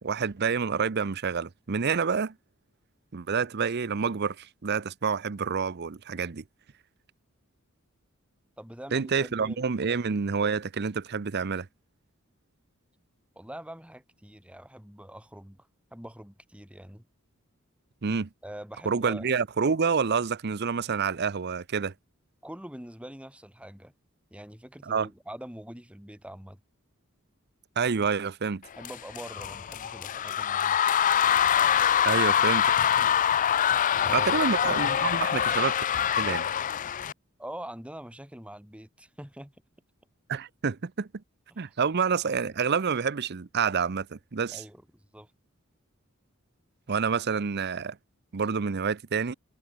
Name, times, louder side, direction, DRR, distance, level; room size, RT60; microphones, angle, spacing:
voice 1, 0.0-2.3 3.1-6.4 8.9-11.7 18.0-18.3 18.8-21.9 24.8-25.1 27.8-28.6 32.0-32.7 34.1-35.8 36.2-36.5 40.3-41.1 41.6-44.6 46.9-48.0 48.3-49.3, right 5 dB, 50° right, 0.7 m, -28 dB
voice 2, 8.6-10.0 13.4-15.6 15.9-17.0 18.4-19.3 22.4-23.9 24.3-26.6 28.8-30.8 34.0-34.3 37.4-39.5 44.5-45.3, right 1 dB, 5° right, 2.4 m, -44 dB
sound 1, 28.8-37.1, left 9 dB, 40° left, 0.4 m, -24 dB
head